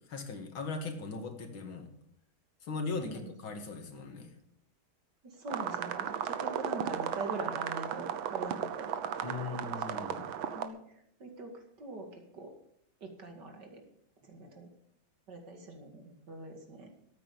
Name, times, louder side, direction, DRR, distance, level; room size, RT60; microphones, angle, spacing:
voice 1, 0.1-1.9 2.6-4.3 9.2-10.3, left 4 dB, 80° left, 5 dB, 2.7 m, -39 dB
voice 2, 3.0-3.3 5.2-9.3 9.9-10.2 10.5-12.5 13.0-13.8 14.2-14.7 15.3-16.9, right 2 dB, 55° right, 4 dB, 2.7 m, -43 dB
sound 1, 5.5-10.7, right 9 dB, 80° right, 1.8 m, -35 dB
13.5 x 8.9 x 7.0 m, 0.71 s
omnidirectional pair, 2.2 m